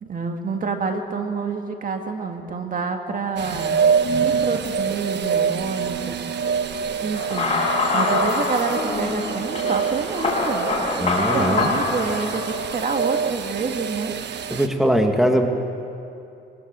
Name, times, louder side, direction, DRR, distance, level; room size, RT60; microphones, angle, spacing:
voice 1, 0.0-3.8 4.2-6.2 7.0-7.6 7.9-14.1, right 4 dB, 45° right, 5 dB, 2.0 m, -28 dB
sound 1, 3.4-14.7, right 6 dB, 60° right, 1.2 m, -26 dB
sound 2, 7.2-13.0, left 3 dB, 30° left, 7.0 m, -25 dB
voice 2, 11.0-11.7 14.5-15.5, equal, ahead, 4 dB, 1.9 m, -20 dB
20.5 x 20.0 x 7.7 m, 2.7 s
cardioid pair, 90°, 20 cm